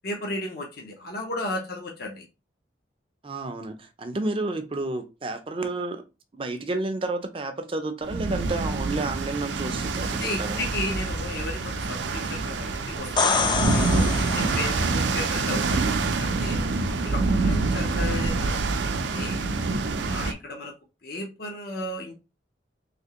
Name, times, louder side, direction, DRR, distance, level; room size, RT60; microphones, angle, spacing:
voice 1, 0.0-2.2 10.1-16.6 17.0-19.5 20.1-20.7 21.0-22.1, left 2 dB, 60° left, 0.7 m, -34 dB
voice 2, 3.2-6.0 6.3-10.7, right 2 dB, 30° right, 0.5 m, -31 dB
sound 1, 8.0-20.3, right 3 dB, 85° right, 0.5 m, -26 dB
sound 2, 13.0-14.9 18.6-18.7, left 4 dB, 25° left, 0.4 m, -26 dB
3.4 x 2.8 x 2.9 m
head